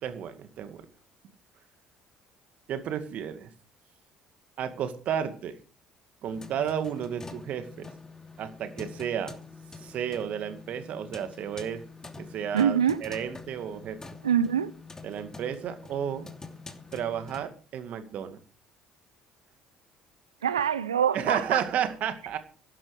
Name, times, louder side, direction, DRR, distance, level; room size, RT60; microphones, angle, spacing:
voice 1, 0.0-0.8 2.7-3.5 4.6-5.6 6.2-7.9 8.4-9.4 9.8-11.8 12.2-14.0 15.0-16.3 16.9-18.4 21.1-22.4, right 8 dB, 55° right, 2.1 m, -32 dB
sound 1, 6.3-17.4, left 4 dB, 20° left, 2.8 m, -46 dB
voice 2, 12.5-13.0 14.2-14.7 20.4-21.6, right 8 dB, 85° right, 0.9 m, -24 dB
15.5 x 12.0 x 4.9 m
figure-of-eight pair, 55°, 3 cm